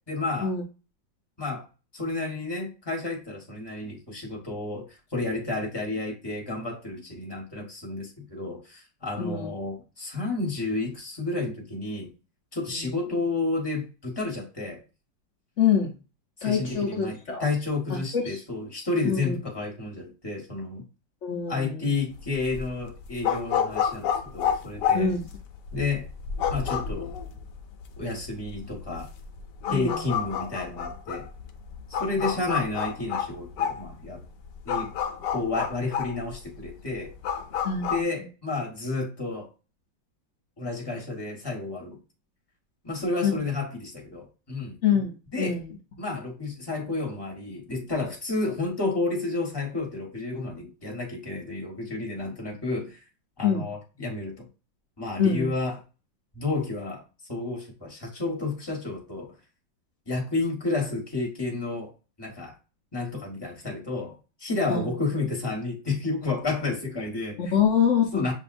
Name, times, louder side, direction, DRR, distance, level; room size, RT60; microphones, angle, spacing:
voice 1, 0.1-0.5 1.4-1.6 1.9-12.1 12.5-14.8 16.4-20.9 21.5-25.1 25.7-26.1 26.5-27.1 28.0-29.1 29.7-31.3 31.9-34.2 34.6-34.9 35.3-37.1 37.9-39.5 40.6-42.0 42.8-44.7 45.3-45.6 46.0-53.0 53.4-54.4 55.0-55.8 56.3-57.0 57.3-59.3 60.1-61.9 62.2-62.5 62.9-67.5 68.1-68.3, left 3 dB, 15° left, -1 dB, 1.3 m, -31 dB
voice 2, 9.2-9.5 12.7-12.9 15.6-15.9 16.4-17.5 17.9-18.4 19.0-19.4 21.2-21.9 24.9-25.2 29.7-30.0 37.6-37.9 43.2-43.3 44.8-45.6 53.4-53.6 55.2-55.5 64.7-64.9 67.5-68.2, left 7 dB, 55° left, 2 dB, 0.8 m, -25 dB
sound 1, 22.1-38.0, left 8 dB, 75° left, 1.3 m, -30 dB
7.0 x 2.7 x 2.6 m, 0.32 s
omnidirectional pair, 2.0 m